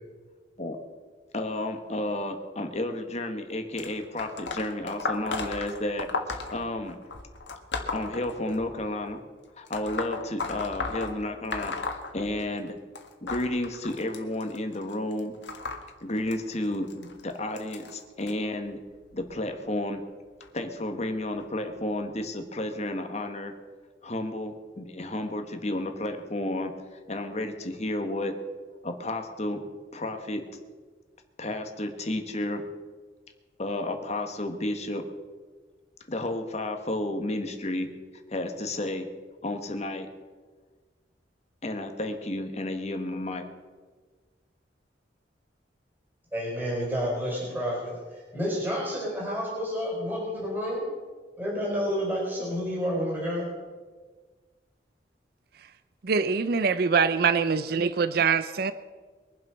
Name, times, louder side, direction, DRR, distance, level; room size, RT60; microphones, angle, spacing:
voice 1, 1.3-7.0 7.9-9.2 9.6-12.8 13.2-15.3 16.0-18.8 19.1-20.0 20.5-23.5 24.0-26.7 27.1-28.3 28.8-29.6 29.9-30.4 31.4-32.6 33.6-35.0 36.1-37.9 38.3-39.1 39.4-40.1 41.6-43.4, left 1 dB, 40° left, 1.5 m, -32 dB
Throwing Pens, 3.8-8.9 9.7-12.7 13.0-18.3 19.1-19.4 20.4-20.5 21.4-21.5 22.2-22.3, left 3 dB, 90° left, 1.7 m, -35 dB
voice 2, 46.3-50.8 51.4-53.5, equal, 10° right, 5.2 m, -30 dB
voice 3, 56.0-58.7, right 5 dB, 60° right, 0.5 m, -24 dB
23.0 x 7.6 x 6.3 m
head